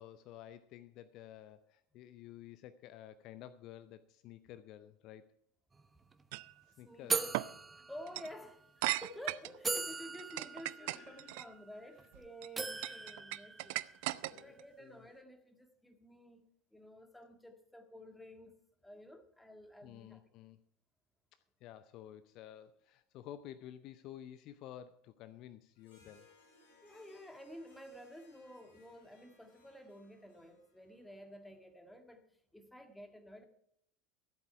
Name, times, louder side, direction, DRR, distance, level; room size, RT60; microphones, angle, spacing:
voice 1, 0.0-5.3 6.8-7.3 10.8-11.5 12.7-13.2 14.2-15.1 19.8-20.6 21.3-26.3, left 11 dB, 45° left, 13 dB, 0.6 m, -52 dB
sound 1, 5.7-5.9 6.1-6.4 7.1-8.5 9.1-9.2 9.6-12.1 12.6-14.2, right 4 dB, 15° right, 0.9 m, -40 dB
sound 2, 6.3-6.5 7.3-7.5 8.1-8.3 8.8-9.6 10.1-11.4 12.1-12.5 12.8-14.6, right 18 dB, 55° right, 0.4 m, -37 dB
voice 2, 6.8-7.3 7.8-13.9 14.3-16.4 16.7-18.5 18.8-20.2 26.0-26.1 26.8-32.2 32.5-33.4, equal, 5° left, 6 dB, 1.8 m, -52 dB
Harp, 25.7-31.5, left 3 dB, 65° left, 4.3 m, -67 dB
14.0 x 8.2 x 5.8 m, 0.72 s
figure-of-eight pair, 75°, 0 cm